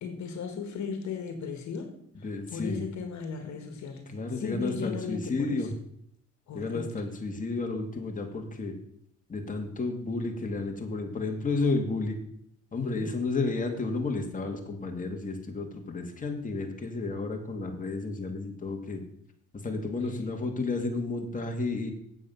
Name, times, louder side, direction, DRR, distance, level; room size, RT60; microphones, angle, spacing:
voice 1, 0.0-1.9 2.5-4.1 4.4-5.7 6.5-6.8 12.9-13.0, left 5 dB, 70° left, 6 dB, 1.7 m, -36 dB
voice 2, 2.2-2.8 4.1-5.7 6.5-8.7 9.3-12.2 12.7-19.0 19.6-21.9, left 3 dB, 25° left, 3 dB, 2.0 m, -32 dB
8.2 x 7.9 x 5.6 m, 0.70 s
cardioid pair, 90°, 30 cm